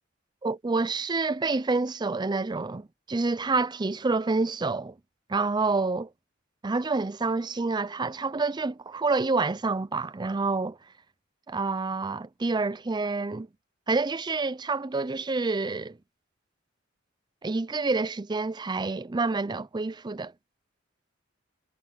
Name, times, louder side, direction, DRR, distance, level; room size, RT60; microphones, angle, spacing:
voice 1, 0.4-4.9 5.3-6.1 6.6-10.8 11.5-13.5 13.9-16.0 17.4-20.3, right 3 dB, 20° right, 0.5 m, -28 dB
head